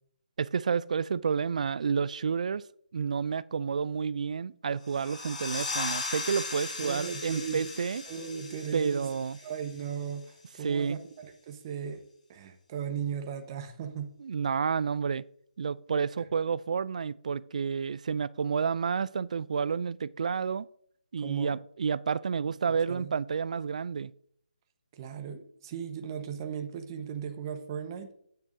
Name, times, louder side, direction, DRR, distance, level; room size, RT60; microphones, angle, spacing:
voice 1, 0.4-2.7 2.9-8.0 8.7-9.4 10.6-11.0 14.2-15.2 15.6-20.7 21.1-24.1, right 6 dB, 50° right, 0.4 m, -30 dB
sound 1, 4.8-10.2, left 3 dB, 55° left, 3.1 m, -38 dB
voice 2, 6.8-7.7 8.1-9.1 9.4-12.0 12.3-14.1 21.2-21.6 22.7-23.1 24.9-28.1, right 7 dB, 25° right, 1.1 m, -37 dB
10.5 x 9.2 x 2.6 m
figure-of-eight pair, 155°, 5 cm